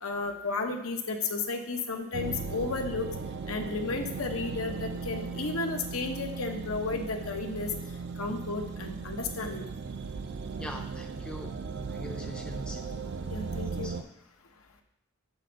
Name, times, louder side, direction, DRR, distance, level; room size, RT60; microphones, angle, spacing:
voice 1, 0.0-3.1 3.5-7.7 8.2-9.6 13.3-13.9, left 3 dB, 80° left, 5 dB, 0.9 m, -33 dB
sound 1, 2.1-14.0, right 4 dB, 50° right, 0.4 m, -37 dB
voice 2, 10.6-11.5 11.9-12.8 13.7-14.0, equal, 5° left, 2 dB, 0.5 m, -42 dB
6.3 x 4.2 x 6.4 m, 0.77 s
head